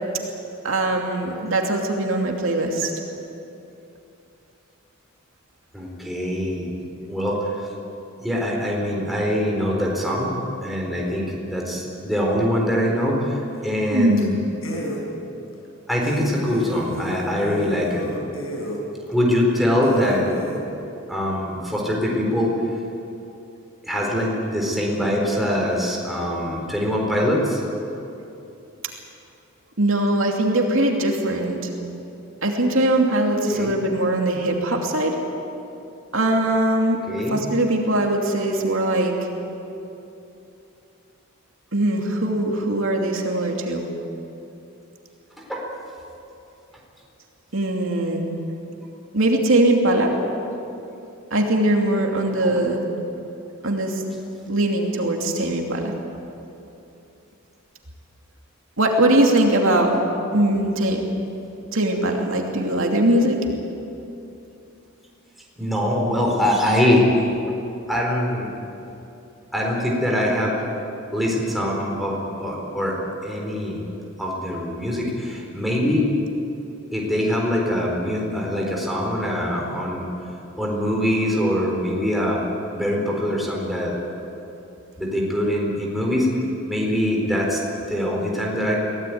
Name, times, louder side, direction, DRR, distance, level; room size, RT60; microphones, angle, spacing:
voice 1, 0.6-2.9 13.9-14.2 29.8-31.6 32.4-35.2 36.1-39.3 41.7-43.8 47.5-48.3 49.1-50.1 51.3-52.8 53.6-54.0 54.5-55.9 58.8-59.9 60.3-61.0 61.7-63.4, right 1 dB, 70° right, 1 dB, 2.8 m, -21 dB
voice 2, 5.7-6.7 7.1-7.7 8.2-10.3 10.6-14.4 15.9-18.1 19.1-20.3 21.1-22.6 23.8-27.6 33.5-33.7 37.1-37.4 39.7-39.8 45.5-45.6 52.4-52.6 65.6-67.1 67.9-68.5 69.5-70.5 71.1-73.0 73.2-73.8 74.2-76.0 76.9-80.1 80.6-82.4 82.7-84.0 85.0-86.3 86.7-87.6 87.9-88.8, left 1 dB, ahead, -2 dB, 4.3 m, -23 dB
sound 1, 13.6-13.9 14.2-14.3 14.6-15.0 15.5-15.6 16.0-18.8 19.4-19.5 19.8-20.6, right 1 dB, 80° left, 5.2 m, -33 dB
24.0 x 17.5 x 9.4 m, 2.8 s
head